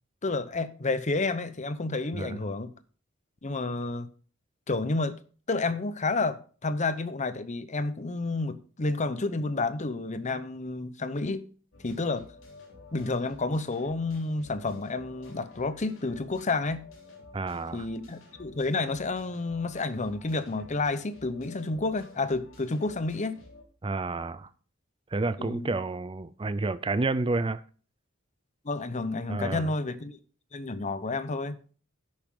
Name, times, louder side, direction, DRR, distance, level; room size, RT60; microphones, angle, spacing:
voice 1, 0.2-2.7 3.4-4.1 4.7-5.2 5.5-11.5 11.8-12.2 12.9-16.8 17.7-23.3 25.4-25.8 28.6-30.2 30.5-31.6, left 3 dB, 35° left, 0.8 m, -30 dB
sound 1, 11.7-23.6, left 2 dB, 70° left, 4.0 m, -52 dB
voice 2, 17.3-17.9 23.8-24.5 25.1-27.6 29.3-29.7, right 3 dB, 25° right, 0.5 m, -30 dB
11.0 x 8.6 x 3.7 m
head